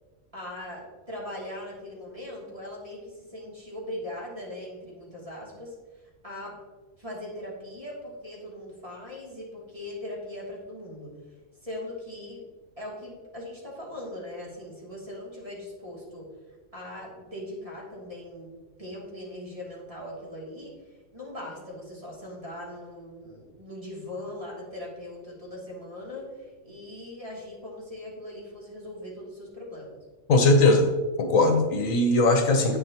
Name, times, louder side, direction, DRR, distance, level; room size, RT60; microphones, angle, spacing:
voice 1, 0.3-5.7 6.2-6.6 7.0-11.1 11.6-12.4 12.8-16.3 16.7-18.5 18.8-30.0, left 1 dB, 25° right, -5 dB, 2.9 m, -40 dB
voice 2, 30.3-30.9 31.2-32.8, left 2 dB, 75° left, 5 dB, 1.4 m, -20 dB
10.5 x 8.5 x 3.0 m, 1.3 s
omnidirectional pair, 1.4 m